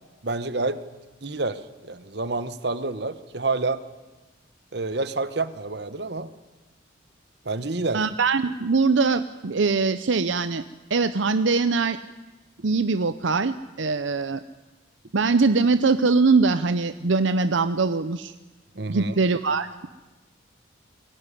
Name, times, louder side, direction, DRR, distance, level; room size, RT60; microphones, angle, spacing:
voice 1, 0.2-0.8 1.2-3.8 4.7-6.3 7.4-8.0 18.7-19.1, right 3 dB, 55° right, 13 dB, 1.1 m, -28 dB
voice 2, 7.9-10.6 10.9-12.0 12.6-14.4 15.1-18.3 18.9-19.9, right 4 dB, 75° right, 12 dB, 0.7 m, -22 dB
22.5 x 17.5 x 9.9 m, 1.2 s
head